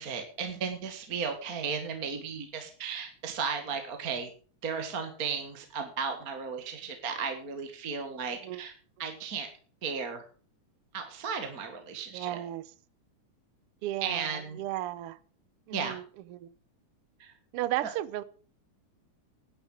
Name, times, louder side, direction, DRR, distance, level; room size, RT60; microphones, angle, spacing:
voice 1, 0.0-4.3 4.6-8.7 9.0-9.5 9.8-10.2 10.9-12.4 14.0-14.6 15.7-16.0 17.2-17.3, right 6 dB, 35° right, 1.6 m, -35 dB
voice 2, 12.1-12.7 13.8-15.2 15.7-16.0 16.3-16.5 17.5-18.2, right 14 dB, 80° right, 1.3 m, -34 dB
11.0 x 10.5 x 6.3 m
omnidirectional pair, 3.5 m